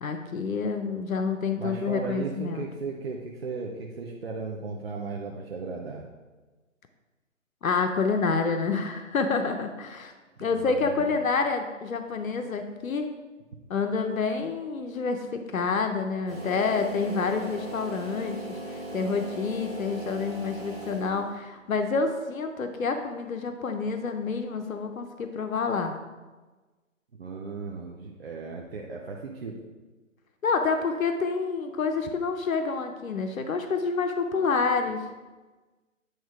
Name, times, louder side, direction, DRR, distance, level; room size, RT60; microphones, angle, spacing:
voice 1, 0.0-2.7 7.6-10.1 10.4-13.1 13.7-25.9 30.4-35.0, left 4 dB, 90° left, 6 dB, 0.8 m, -28 dB
voice 2, 1.6-6.0 10.5-11.2 27.2-29.6, right 4 dB, 50° right, -1 dB, 0.7 m, -36 dB
sound 1, 16.3-21.4, right 1 dB, ahead, 0.8 m, -38 dB
8.0 x 3.1 x 4.6 m, 1.3 s
hypercardioid pair, 165°, 40 cm